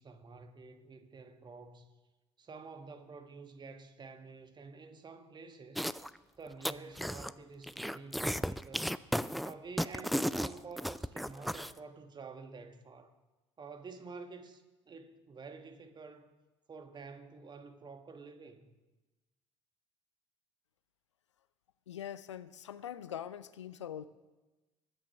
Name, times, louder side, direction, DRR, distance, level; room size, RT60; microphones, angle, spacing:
voice 1, 0.0-1.9 2.4-5.9 6.4-9.0 9.4-13.1 13.6-16.4 16.7-18.7, right 4 dB, 30° right, 1.4 m, -49 dB
sound 1, 5.7-6.2 6.5-7.3 7.6-11.7, equal, ahead, 0.3 m, -34 dB
voice 2, 21.9-24.1, left 10 dB, 80° left, 0.5 m, -43 dB
21.0 x 8.7 x 3.5 m
figure-of-eight pair, 60°, 15 cm